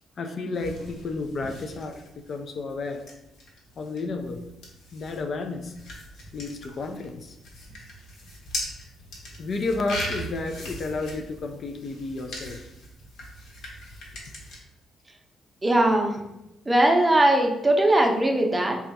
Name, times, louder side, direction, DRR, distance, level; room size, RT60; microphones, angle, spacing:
voice 1, 0.2-3.0 3.8-4.4 4.9-5.7 6.3-7.3 9.4-12.7, left 3 dB, 50° left, 5 dB, 0.4 m, -32 dB
sound 1, 0.5-14.6, left 1 dB, 75° left, 1.1 m, -40 dB
voice 2, 15.6-16.2 16.7-18.8, right 1 dB, 20° right, 2 dB, 0.6 m, -20 dB
3.3 x 2.3 x 4.0 m, 0.89 s
cardioid pair, 90°, 0 cm